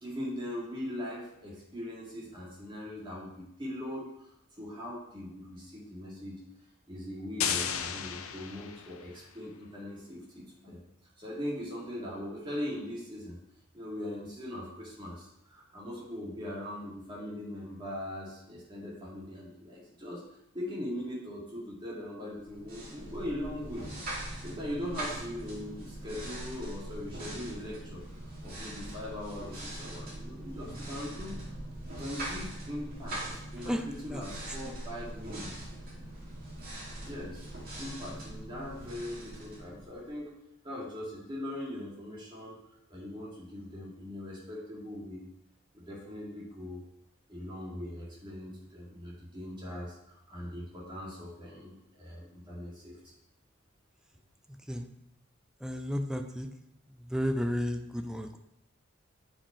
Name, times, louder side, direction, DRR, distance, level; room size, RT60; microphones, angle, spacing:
voice 1, 0.0-4.1 4.6-6.4 6.9-10.8 11.2-13.4 13.7-20.2 20.5-23.9 24.4-28.0 28.4-31.4 32.0-33.2 33.5-35.7 37.0-37.4 37.8-40.3 40.6-42.6 42.9-45.2 45.7-46.8 47.3-52.9, left 1 dB, 25° right, -5 dB, 2.3 m, -40 dB
sound 1, 7.4-9.2, left 8 dB, 85° left, 0.6 m, -34 dB
sound 2, 22.4-40.2, right 1 dB, 45° right, 2.4 m, -42 dB
voice 2, 55.6-56.5 57.1-58.4, equal, 5° right, 6 dB, 0.4 m, -32 dB
7.4 x 5.1 x 4.2 m, 0.82 s
head